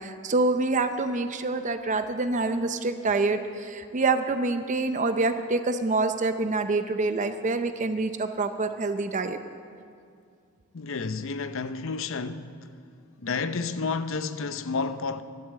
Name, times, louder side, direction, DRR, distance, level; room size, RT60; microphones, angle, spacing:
voice 1, 0.0-9.4, right 3 dB, 35° right, 0.6 m, -26 dB
voice 2, 10.7-12.5 13.2-15.2, left 4 dB, 65° left, 0.6 m, -30 dB
14.0 x 12.0 x 7.5 m
head